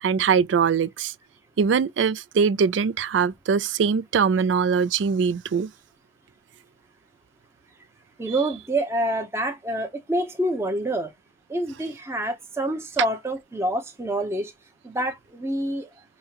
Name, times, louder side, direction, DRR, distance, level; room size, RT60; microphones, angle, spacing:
voice 1, 0.0-1.1 1.6-5.7, right 6 dB, 85° right, 0.4 m, -22 dB
voice 2, 8.2-11.1 11.5-14.5 14.8-15.9, right 1 dB, 15° right, 0.7 m, -27 dB
5.5 x 2.1 x 2.9 m
head